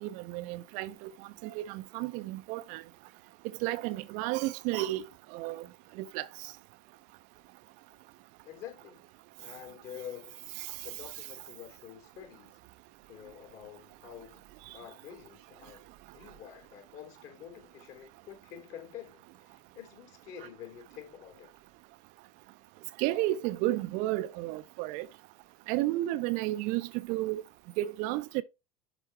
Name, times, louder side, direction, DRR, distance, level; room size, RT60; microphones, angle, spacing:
voice 1, 0.0-1.1 1.4-2.8 3.6-5.0 5.3-5.6 6.0-6.3 23.0-25.1 25.7-27.4 27.8-28.4, right 16 dB, 45° right, 0.7 m, -32 dB
voice 2, 8.4-9.1 9.4-10.4 10.8-12.6 13.1-14.5 14.7-21.5, left 9 dB, 45° left, 3.3 m, -48 dB
11.0 x 5.4 x 3.3 m
figure-of-eight pair, 80°, 19 cm